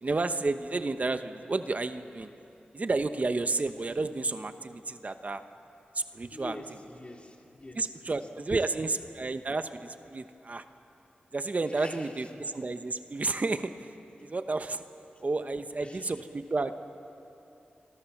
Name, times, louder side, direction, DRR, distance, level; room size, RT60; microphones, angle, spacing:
voice 1, 0.0-2.3 2.7-5.4 5.9-6.6 7.8-10.6 11.3-13.9 14.2-14.8 15.2-16.7, right 3 dB, 45° right, 9 dB, 1.0 m, -31 dB
voice 2, 6.3-8.2 8.5-8.6 9.0-9.1 11.7-12.3 15.1-15.2 15.8-16.2, left 1 dB, 35° left, 1 dB, 3.6 m, -46 dB
26.5 x 24.5 x 7.2 m, 2.9 s
cardioid pair, 60°, 3 cm